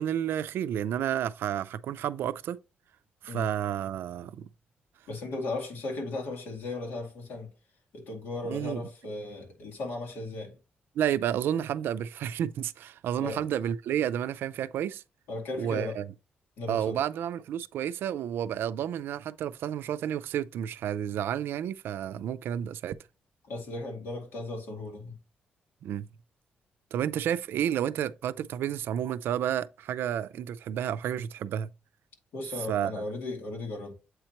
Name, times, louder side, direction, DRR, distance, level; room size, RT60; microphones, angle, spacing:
voice 1, 0.0-2.6 3.2-4.5 8.5-8.8 11.0-15.0 15.6-16.1 16.7-23.0 25.8-26.1 26.9-31.7 32.7-33.0, right 10 dB, 85° right, 0.4 m, -31 dB
voice 2, 5.1-7.5 7.9-10.5 13.2-13.5 15.3-16.0 16.6-17.0 23.4-25.2 32.3-33.9, left 2 dB, 85° left, 2.4 m, -36 dB
8.0 x 4.4 x 2.9 m
wide cardioid pair, 180°, 4 cm